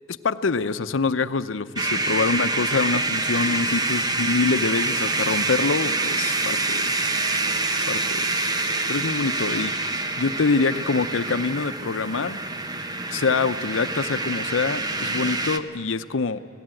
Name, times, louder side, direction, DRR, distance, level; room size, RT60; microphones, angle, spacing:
voice 1, 0.1-6.9 7.9-8.3 8.9-12.4 13.1-16.4, left 4 dB, 80° left, 12 dB, 0.7 m, -25 dB
sound 1, 1.8-15.6, right 2 dB, 20° right, 0.8 m, -26 dB
26.5 x 17.0 x 9.0 m, 2.8 s
head